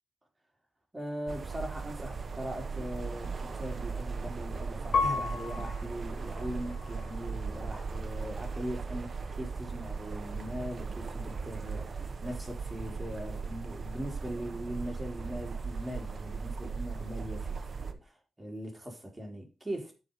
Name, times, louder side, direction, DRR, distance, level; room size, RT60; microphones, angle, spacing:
voice 1, 0.9-17.6 17.8-20.0, equal, 20° right, 3.3 m, -40 dB
sound 1, 1.3-17.9, right 4 dB, 50° right, 1.5 m, -38 dB
Piano, 4.9-7.7 8.3-9.0, left 4 dB, 70° left, 2.4 m, -35 dB
12.0 x 4.9 x 5.3 m
cardioid pair, 85°, 0 cm